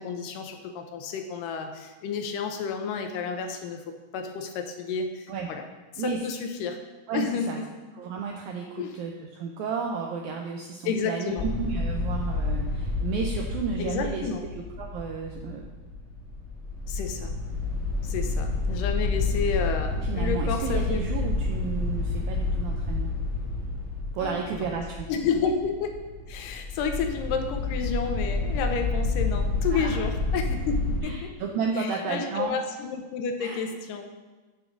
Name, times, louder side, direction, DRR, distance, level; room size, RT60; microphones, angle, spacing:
voice 1, 0.0-5.7 5.9-6.8 7.1-7.7 8.8-9.0 10.9-11.5 13.8-14.4 16.9-17.4 18.0-21.0 24.2-24.7 25.1-26.0 26.3-31.3 31.8-34.1, left 5 dB, 80° left, 5 dB, 2.1 m, -31 dB
voice 2, 7.1-7.6 8.0-14.3 14.5-15.6 20.0-23.1 24.1-25.1 29.7-30.0 31.0-32.6 33.4-33.6, right 5 dB, 90° right, 1 dB, 1.7 m, -32 dB
sound 1, 11.3-31.0, left 3 dB, 5° right, 1.7 m, -29 dB
7.0 x 3.8 x 5.9 m, 1.3 s
omnidirectional pair, 3.9 m